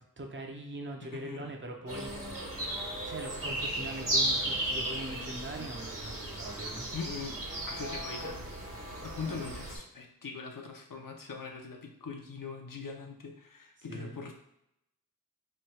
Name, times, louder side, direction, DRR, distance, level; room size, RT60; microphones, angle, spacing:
voice 1, 0.2-2.4 3.0-6.9 13.9-14.2, right 1 dB, 35° right, 1 dB, 0.6 m, -41 dB
sound 1, 1.9-9.8, right 1 dB, 60° right, 1.3 m, -35 dB
voice 2, 6.9-7.3 7.7-8.4 9.0-14.3, left 5 dB, 65° left, 2 dB, 0.6 m, -41 dB
3.2 x 2.3 x 4.3 m, 0.80 s
wide cardioid pair, 60°, 35 cm